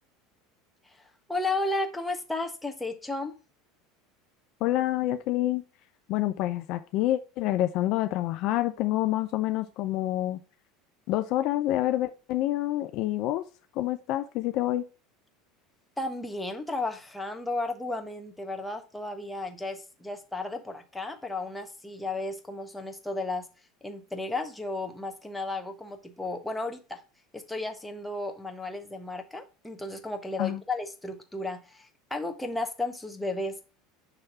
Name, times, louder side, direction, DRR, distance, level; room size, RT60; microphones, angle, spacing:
voice 1, 1.0-3.3 16.0-23.4 23.8-27.0 27.3-33.6, left 2 dB, 10° left, 1.2 m, -34 dB
voice 2, 4.6-5.6 6.1-10.4 11.1-13.4 13.7-14.9 30.4-30.6, left 14 dB, 60° left, 0.5 m, -27 dB
6.0 x 3.2 x 5.7 m
hypercardioid pair, 80°, 0 cm